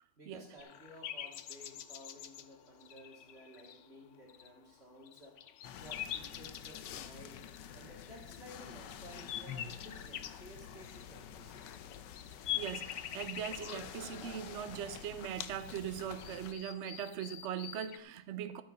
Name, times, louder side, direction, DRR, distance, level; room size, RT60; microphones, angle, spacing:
voice 1, 0.2-5.4 5.8-7.4 7.7-11.8, equal, 35° right, 2.5 m, -55 dB
sound 1, 0.6-4.7 5.0-7.6 8.2-8.5 8.9-18.0, left 11 dB, 85° left, 0.6 m, -45 dB
sound 2, 5.6-16.5, left 9 dB, 70° left, 1.3 m, -48 dB
voice 2, 12.5-18.6, right 9 dB, 65° right, 0.7 m, -40 dB
12.0 x 8.5 x 5.2 m
omnidirectional pair, 2.0 m